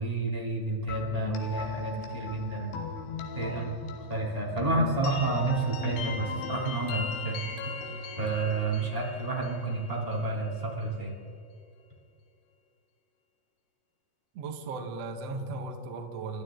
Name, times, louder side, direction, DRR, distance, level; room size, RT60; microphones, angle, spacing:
voice 1, 0.0-2.7 3.3-3.6 4.1-7.5 8.2-11.1, right 3 dB, 10° right, -4 dB, 2.1 m, -30 dB
sound 1, 0.9-10.6, left 5 dB, 75° left, 3.9 m, -38 dB
voice 2, 14.3-16.4, right 3 dB, 70° right, 3 dB, 1.5 m, -37 dB
28.0 x 13.0 x 3.9 m, 2.5 s
omnidirectional pair, 5.4 m